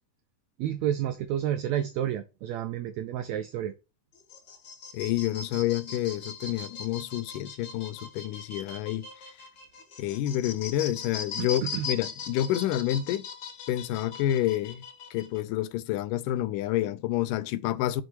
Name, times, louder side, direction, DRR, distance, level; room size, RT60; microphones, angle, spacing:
voice 1, 0.6-3.7 11.4-11.9, right 11 dB, 85° right, 1.5 m, -30 dB
sound 1, 4.1-15.4, left 5 dB, 50° left, 1.4 m, -40 dB
voice 2, 4.9-9.4 10.0-13.3 13.7-14.8 15.1-18.0, left 13 dB, 85° left, 2.2 m, -29 dB
6.2 x 5.2 x 4.6 m
omnidirectional pair, 3.8 m